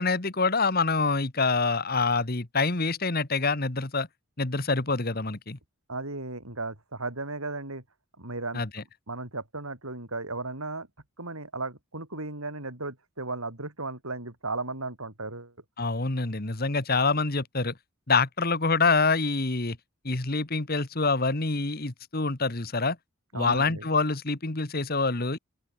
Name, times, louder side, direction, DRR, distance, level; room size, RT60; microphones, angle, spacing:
voice 1, 0.0-4.1 4.4-5.6 8.5-8.8 15.8-17.7 18.1-19.8 20.0-23.0 23.3-25.4, left 3 dB, 45° left, 1.7 m, -26 dB
voice 2, 5.9-7.8 8.2-8.6 9.1-10.9 11.2-15.5 23.3-23.9, right 3 dB, 85° right, 6.2 m, -35 dB
open air
head